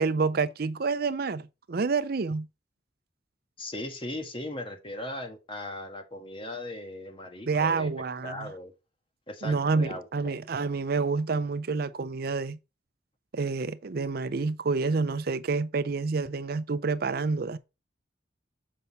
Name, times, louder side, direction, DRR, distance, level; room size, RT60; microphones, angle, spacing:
voice 1, 0.0-2.5 7.5-8.5 9.4-12.6 13.3-17.6, right 4 dB, 55° right, 0.5 m, -28 dB
voice 2, 3.6-7.9 8.2-8.7 9.3-10.4, left 1 dB, 30° left, 1.6 m, -38 dB
7.6 x 5.4 x 4.0 m
head